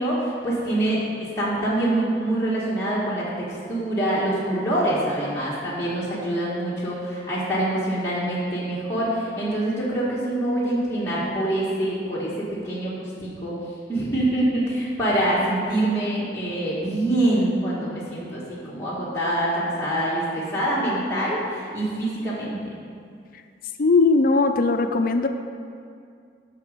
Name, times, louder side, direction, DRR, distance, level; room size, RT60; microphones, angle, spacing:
voice 1, 0.0-13.5 13.9-22.6, right 1 dB, 15° left, -9 dB, 1.5 m, -25 dB
voice 2, 23.8-25.3, left 3 dB, 55° left, 7 dB, 0.5 m, -19 dB
10.5 x 6.0 x 5.1 m, 2.3 s
head